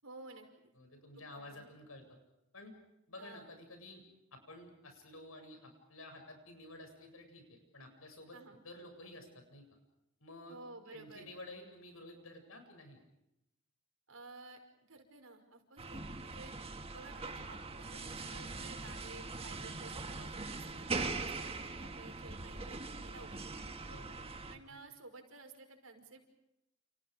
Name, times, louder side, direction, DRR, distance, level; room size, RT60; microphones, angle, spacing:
voice 1, 0.0-0.7 1.1-1.7 3.2-3.6 8.3-8.6 10.5-11.3 14.1-14.6 14.9-16.5 16.9-23.4 23.7-23.8 24.5-26.2, right 3 dB, 90° right, 5 dB, 5.5 m, -54 dB
voice 2, 0.8-2.0 2.5-2.7 3.1-4.0 4.3-8.4 8.6-9.6 10.2-10.6 10.9-13.0 23.9-24.2, left 1 dB, 85° left, 5 dB, 7.8 m, -52 dB
sound 1, 15.8-24.6, right 3 dB, 30° right, 1.6 m, -42 dB
29.5 x 29.5 x 5.3 m, 0.88 s
head